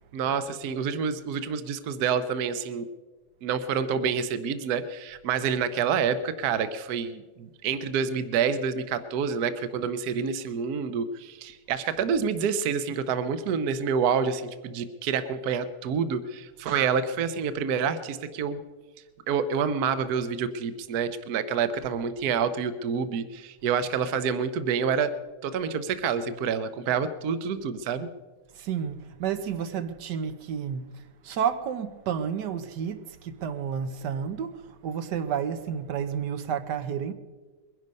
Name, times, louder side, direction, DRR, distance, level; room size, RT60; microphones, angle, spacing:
voice 1, 0.1-2.9 3.4-18.6 19.3-25.1 25.4-28.1, right 6 dB, 70° right, 1.3 m, -28 dB
voice 2, 28.5-37.1, right 8 dB, 85° right, 1.5 m, -31 dB
22.0 x 11.0 x 5.3 m
omnidirectional pair, 1.8 m